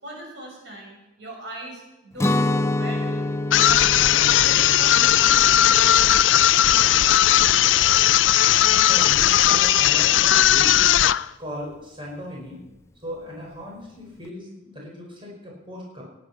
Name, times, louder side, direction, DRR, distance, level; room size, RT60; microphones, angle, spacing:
voice 1, 0.0-3.3 3.6-6.2, right 1 dB, 70° right, -1 dB, 6.5 m, -41 dB
Guitar, 2.2-8.0, left 2 dB, 15° left, 0.6 m, -28 dB
sound 1, 3.5-11.3, left 12 dB, 75° left, 0.4 m, -17 dB
voice 2, 8.9-10.8 11.4-12.6 13.0-16.0, left 1 dB, 30° right, -2 dB, 5.2 m, -37 dB
18.5 x 10.5 x 5.9 m, 0.99 s
head